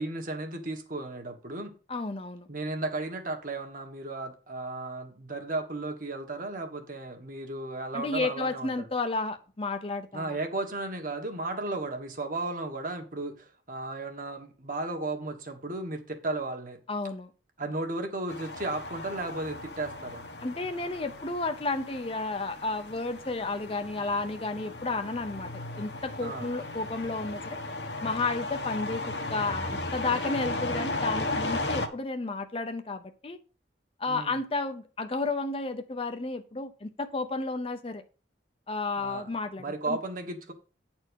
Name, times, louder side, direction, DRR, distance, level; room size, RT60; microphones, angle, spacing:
voice 1, 0.0-1.7 2.5-8.7 10.1-16.8 17.6-20.2 26.2-26.5 31.4-31.7 34.1-34.4 39.0-40.5, right 2 dB, 50° right, 1.5 m, -35 dB
voice 2, 1.9-2.5 7.9-10.4 16.9-17.3 20.4-27.6 28.0-33.4 34.0-38.0 38.7-40.0, left 3 dB, 30° left, 0.7 m, -32 dB
sound 1, 18.3-31.9, left 2 dB, 65° left, 1.2 m, -36 dB
9.4 x 4.4 x 6.3 m
head